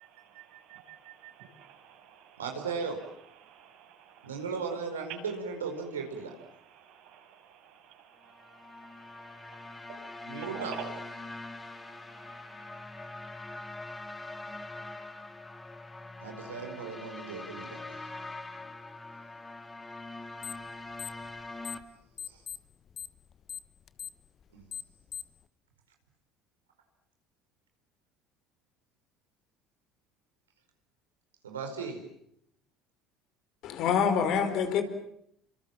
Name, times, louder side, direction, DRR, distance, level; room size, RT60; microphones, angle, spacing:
voice 1, 0.0-4.5 4.9-5.3 5.8-13.3, right 8 dB, 70° right, 7.2 m, -50 dB
voice 2, 2.4-3.0 4.2-6.3 10.3-10.7 16.2-18.1 22.2-22.4 24.5-24.6 31.4-32.0, right 5 dB, 90° right, 4.8 m, -37 dB
sound 1, 8.3-21.8, left 2 dB, 15° left, 3.4 m, -43 dB
sound 2, 20.4-20.7 20.9-21.9 22.2-25.4, left 8 dB, 45° left, 1.3 m, -40 dB
voice 3, 33.6-34.8, left 7 dB, 60° left, 4.4 m, -26 dB
29.5 x 25.5 x 7.4 m
hypercardioid pair, 65°, 0 cm